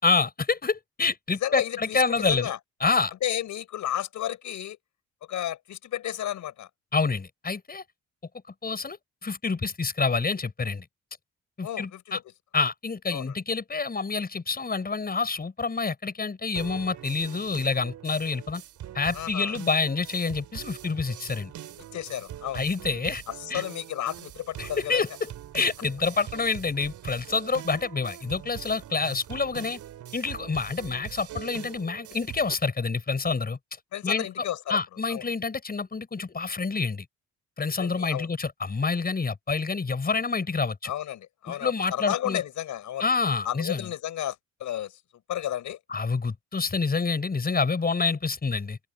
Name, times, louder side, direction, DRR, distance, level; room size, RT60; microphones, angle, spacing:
voice 1, 0.0-2.5 2.8-3.1 6.9-7.8 8.6-9.0 9.2-10.8 11.6-12.2 12.5-18.6 18.9-21.5 22.5-23.2 23.5-23.6 24.6-29.8 30.1-33.6 34.0-37.0 37.6-40.9 41.5-42.4 43.0-43.9 45.9-48.8, left 4 dB, 30° left, 6.4 m, -27 dB
voice 2, 1.4-2.6 3.2-4.8 5.3-6.7 11.6-12.2 13.1-13.3 19.1-19.6 21.9-22.6 23.5-25.0 33.9-34.8 35.1-35.3 37.8-38.3 40.8-43.1 43.4-44.9 45.3-45.8, left 11 dB, 75° left, 5.5 m, -32 dB
sound 1, 16.5-32.5, right 11 dB, 75° right, 3.4 m, -43 dB
open air
cardioid pair, 90°, 30 cm